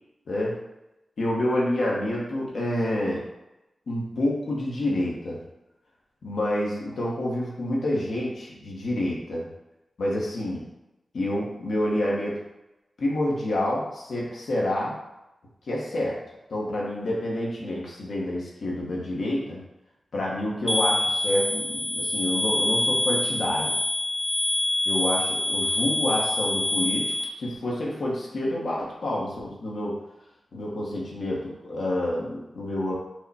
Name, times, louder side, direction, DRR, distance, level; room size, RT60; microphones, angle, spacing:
voice 1, 0.3-0.6 1.2-3.3 3.9-5.4 6.2-9.5 10.0-10.7 11.1-12.4 13.0-15.0 15.7-16.2 16.5-19.6 20.1-23.7 24.9-30.0 30.5-32.9, left 1 dB, 70° left, -4 dB, 1.0 m, -28 dB
sound 1, 20.7-27.2, left 1 dB, ahead, 0.8 m, -26 dB
4.7 x 2.2 x 4.1 m, 0.96 s
wide cardioid pair, 150°, 0 cm